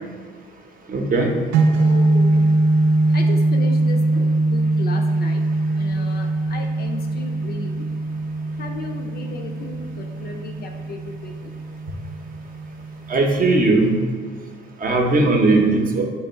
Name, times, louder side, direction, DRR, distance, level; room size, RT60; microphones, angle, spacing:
voice 1, 0.9-1.3 13.1-13.9 14.8-16.0, right 2 dB, 45° right, 2 dB, 0.7 m, -18 dB
sound 1, 1.5-13.6, right 2 dB, 85° right, 0.5 m, -21 dB
voice 2, 1.7-2.6 3.1-5.4 5.7-7.9 8.6-11.5, left 4 dB, 50° left, 4 dB, 0.5 m, -35 dB
3.2 x 2.9 x 4.4 m, 1.5 s
cardioid pair, 90°, 20 cm